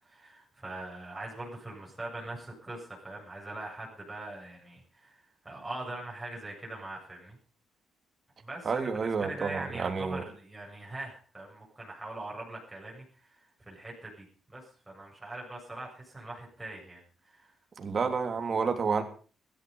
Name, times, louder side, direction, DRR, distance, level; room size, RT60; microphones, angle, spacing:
voice 1, 0.0-7.4 8.4-17.5, right 2 dB, 15° right, -3 dB, 7.7 m, -42 dB
voice 2, 8.6-10.2 17.8-19.0, right 5 dB, 40° right, 5 dB, 3.3 m, -30 dB
16.5 x 13.5 x 5.5 m, 0.41 s
cardioid pair, 90°, 0 cm